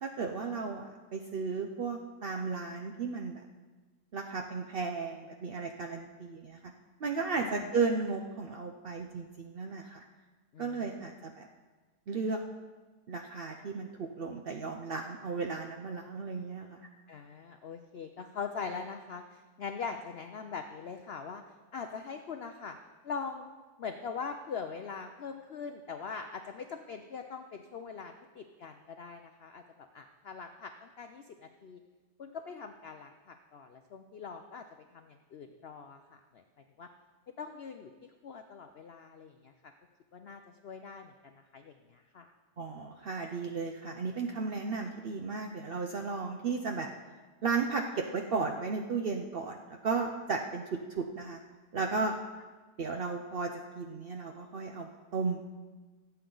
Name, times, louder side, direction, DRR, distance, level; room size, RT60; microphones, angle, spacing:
voice 1, 0.0-3.4 4.1-6.6 7.0-10.0 10.6-11.5 12.1-12.4 13.1-16.9 42.6-46.9 47.4-51.4 51.7-52.1 52.8-53.5 53.8-55.5, right 4 dB, 70° right, 3 dB, 0.5 m, -34 dB
voice 2, 10.5-11.1 17.1-21.4 21.7-22.8 23.0-23.5 23.8-31.8 32.2-34.6 34.9-36.4 36.8-36.9 37.4-39.7 40.1-42.3, left 5 dB, 85° left, 6 dB, 0.5 m, -42 dB
17.5 x 8.1 x 3.9 m, 1.3 s
omnidirectional pair, 1.8 m